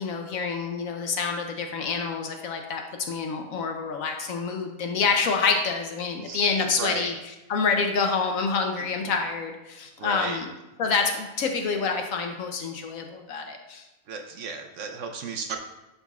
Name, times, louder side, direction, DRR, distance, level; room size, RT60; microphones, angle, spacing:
voice 1, 0.0-2.8 3.1-7.1 7.5-10.5 10.8-13.8, left 5 dB, 70° left, 4 dB, 1.0 m, -27 dB
voice 2, 6.8-7.1 10.0-10.4 14.1-15.6, right 5 dB, 65° right, 4 dB, 0.9 m, -34 dB
11.0 x 4.0 x 2.4 m, 1.0 s
omnidirectional pair, 1.5 m